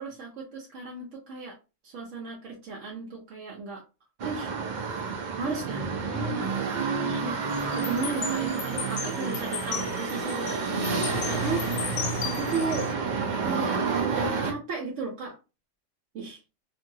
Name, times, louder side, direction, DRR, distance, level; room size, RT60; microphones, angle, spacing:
voice 1, 0.0-1.6 1.8-3.8 4.2-4.5 5.4-6.5 7.0-7.4 7.7-11.6 12.2-13.0 13.4-15.4 16.1-16.4, right 3 dB, 75° right, -2 dB, 1.0 m, -35 dB
sound 1, 4.2-14.5, right 5 dB, 50° right, 0.6 m, -30 dB
sound 2, 7.5-12.9, left 7 dB, 75° left, 0.9 m, -36 dB
2.7 x 2.6 x 2.7 m, 0.30 s
omnidirectional pair, 1.3 m